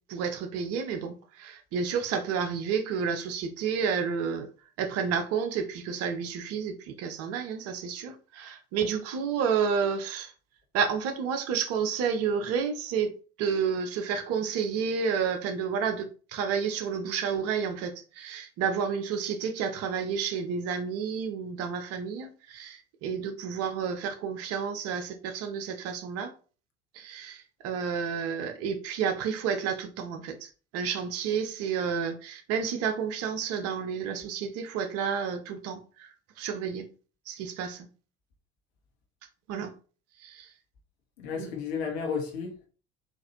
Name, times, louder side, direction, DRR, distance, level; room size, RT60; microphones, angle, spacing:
voice 1, 0.1-4.5 4.8-10.3 10.7-13.1 13.4-26.3 26.9-36.9 37.3-37.9 39.5-39.7 40.2-40.5 41.4-41.5, right 6 dB, 45° right, 0.7 m, -30 dB
voice 2, 41.2-42.7, left 6 dB, 60° left, 1.0 m, -33 dB
4.0 x 2.5 x 2.9 m
figure-of-eight pair, 65°, 36 cm